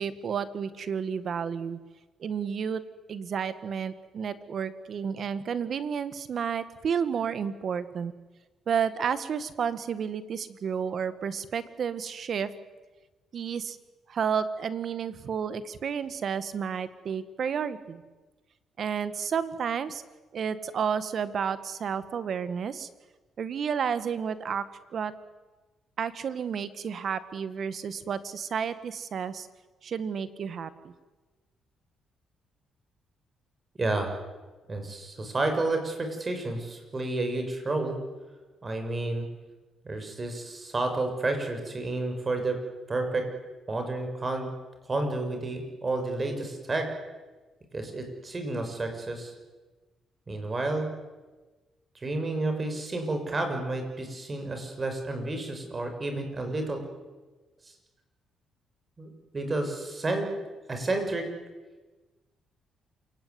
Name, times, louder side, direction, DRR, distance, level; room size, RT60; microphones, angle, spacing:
voice 1, 0.0-1.8 2.2-2.8 3.1-8.1 8.7-12.5 13.3-13.8 14.1-18.0 18.8-20.0 20.3-22.9 23.4-24.6 24.9-25.1 26.0-29.5 29.8-30.9, right 7 dB, 55° right, 13 dB, 1.8 m, -31 dB
voice 2, 33.8-34.1 34.7-38.0 38.6-39.3 39.8-42.6 42.9-43.3 43.7-44.5 44.9-46.9 47.7-49.3 50.3-50.9 52.0-56.8 59.0-60.3 60.7-61.3, right 2 dB, 30° right, 5 dB, 6.5 m, -30 dB
28.0 x 17.5 x 9.7 m, 1.2 s
cardioid pair, 90°, 0 cm